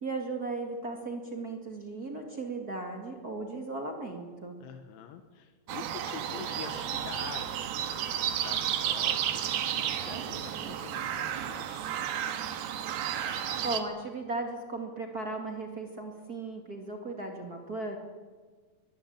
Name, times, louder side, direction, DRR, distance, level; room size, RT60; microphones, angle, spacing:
voice 1, 0.0-4.5 13.6-18.0, right 3 dB, 35° right, 3 dB, 1.5 m, -36 dB
voice 2, 4.6-12.1, left 7 dB, 90° left, 7 dB, 3.9 m, -46 dB
sound 1, 5.7-13.8, right 10 dB, 70° right, 3.1 m, -32 dB
23.0 x 18.0 x 8.9 m, 1.4 s
omnidirectional pair, 5.2 m